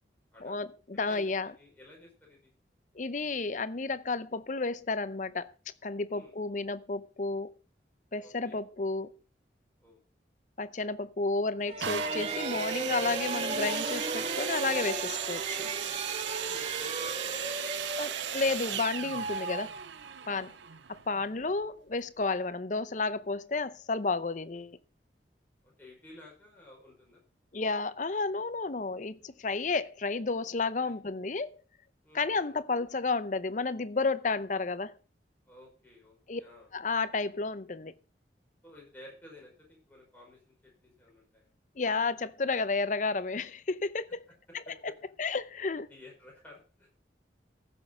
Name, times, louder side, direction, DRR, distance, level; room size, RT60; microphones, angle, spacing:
voice 1, 0.4-1.5 3.0-5.5 5.8-7.5 8.1-9.1 10.6-15.6 18.0-19.7 20.3-20.5 20.9-24.8 27.5-31.6 32.1-35.0 36.3-36.4 36.7-37.9 41.8-44.2 45.2-45.9, left 3 dB, 45° left, 0.7 m, -32 dB
voice 2, 1.1-2.5 6.1-6.4 8.2-8.6 9.8-10.0 16.3-18.4 20.2-20.6 25.6-27.2 29.5-29.7 30.7-30.9 32.0-32.6 35.5-36.7 38.6-41.5 44.3-44.4 44.7-44.8 45.9-46.9, left 1 dB, 10° left, 5.4 m, -54 dB
sound 1, 11.6-20.3, right 2 dB, 35° right, 1.1 m, -36 dB
sound 2, 11.8-21.5 22.2-22.3, right 10 dB, 90° right, 0.6 m, -37 dB
15.0 x 6.4 x 5.4 m
head